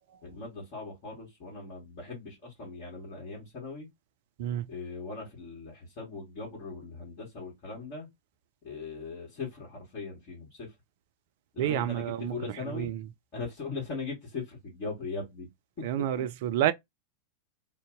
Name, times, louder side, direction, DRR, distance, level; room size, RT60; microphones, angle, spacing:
voice 1, 0.2-3.9 4.7-8.1 8.6-10.7 11.5-12.9 13.3-15.5, left 4 dB, 40° left, 1.4 m, -39 dB
voice 2, 11.6-12.4 12.7-13.0 15.8-16.7, right 12 dB, 50° right, 0.3 m, -29 dB
2.6 x 2.1 x 3.6 m
figure-of-eight pair, 90°, 0 cm